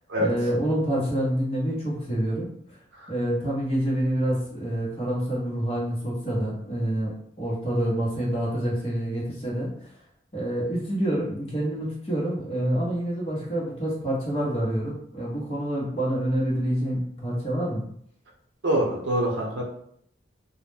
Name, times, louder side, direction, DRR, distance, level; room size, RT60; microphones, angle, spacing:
voice 1, 0.2-2.5 3.1-7.1 7.4-9.9 10.3-17.8, right 1 dB, 30° left, -5 dB, 0.7 m, -27 dB
voice 2, 18.6-19.6, right 1 dB, 80° right, -1 dB, 0.6 m, -25 dB
2.2 x 2.1 x 3.2 m, 0.68 s
head